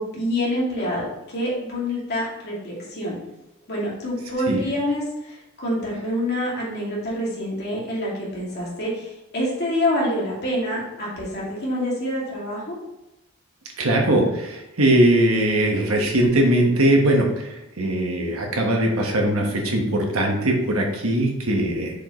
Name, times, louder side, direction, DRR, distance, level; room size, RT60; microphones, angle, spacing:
voice 1, 0.0-3.2 3.7-12.8, left 1 dB, 50° left, -5 dB, 2.3 m, -26 dB
voice 2, 13.8-17.5 17.8-21.9, right 1 dB, 85° right, 1 dB, 1.3 m, -20 dB
6.6 x 5.2 x 3.1 m, 0.93 s
head